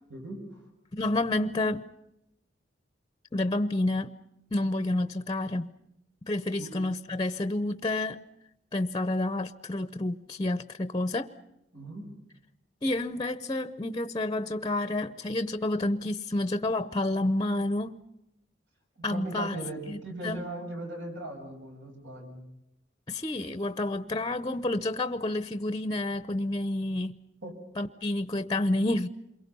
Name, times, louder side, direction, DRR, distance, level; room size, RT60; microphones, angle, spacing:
voice 1, 0.1-0.4 6.6-6.7 11.7-12.0 19.0-22.4 27.4-27.6, right 2 dB, 75° right, 6.5 m, -38 dB
voice 2, 1.0-1.8 3.3-4.1 4.5-5.7 6.3-8.2 8.7-11.3 12.8-17.9 19.0-19.6 19.9-20.0 20.2-20.4 23.1-27.1 27.8-29.1, left 2 dB, 20° left, 0.7 m, -29 dB
28.5 x 23.0 x 5.5 m
head